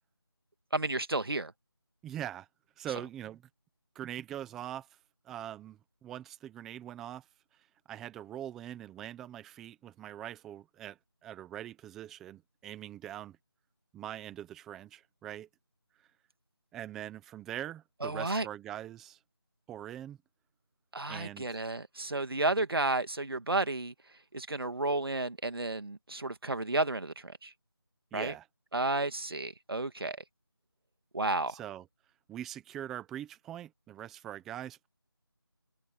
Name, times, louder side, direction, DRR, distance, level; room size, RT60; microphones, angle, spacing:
voice 1, 0.7-1.5 18.0-18.5 20.9-23.9 24.3-27.5 28.1-28.3 28.7-30.2 31.1-31.6, right 2 dB, 65° right, 2.4 m, -32 dB
voice 2, 2.0-2.5 2.8-3.4 3.9-4.9 5.2-7.2 7.9-13.4 13.9-15.5 16.7-19.2 19.7-20.2 21.1-21.6 28.1-28.5 31.5-31.9 32.3-34.9, right 11 dB, ahead, 0.9 m, -42 dB
figure-of-eight pair, 170°, 13 cm